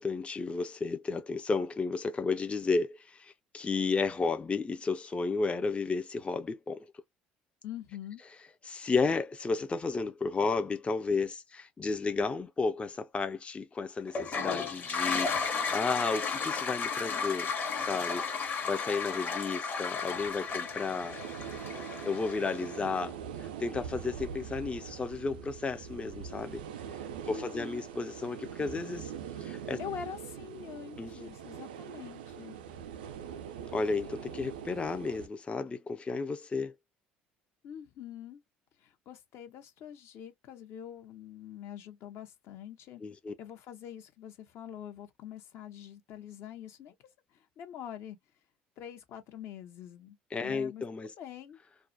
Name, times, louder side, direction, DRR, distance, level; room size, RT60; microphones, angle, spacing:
voice 1, 0.0-6.9 8.6-17.5 17.9-21.2 22.0-26.6 26.9-29.1 29.4-29.8 31.0-31.3 33.7-36.7 43.0-43.3 50.3-51.1, left 4 dB, 25° left, 0.4 m, -33 dB
voice 2, 7.6-8.2 27.2-27.9 29.8-32.6 37.6-38.4 38.8-43.0 43.4-46.9 47.3-48.2 48.8-50.2 50.4-51.6, left 9 dB, 65° left, 0.7 m, -45 dB
Toilet flush, 14.1-23.0, left 5 dB, 40° left, 1.0 m, -34 dB
sound 1, 20.1-35.3, right 8 dB, 90° right, 0.3 m, -43 dB
2.3 x 2.1 x 2.5 m
hypercardioid pair, 65°, 5 cm